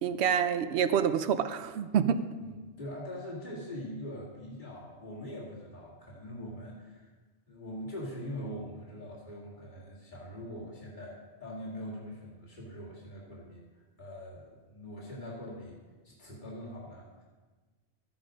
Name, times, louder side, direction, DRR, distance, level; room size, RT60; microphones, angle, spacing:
voice 1, 0.0-2.2, right 8 dB, 75° right, 11 dB, 0.9 m, -27 dB
voice 2, 2.4-7.1 7.5-13.6 14.0-15.8 16.0-17.2, equal, 45° left, -5 dB, 2.7 m, -42 dB
14.0 x 9.0 x 5.1 m, 1.3 s
omnidirectional pair, 1.1 m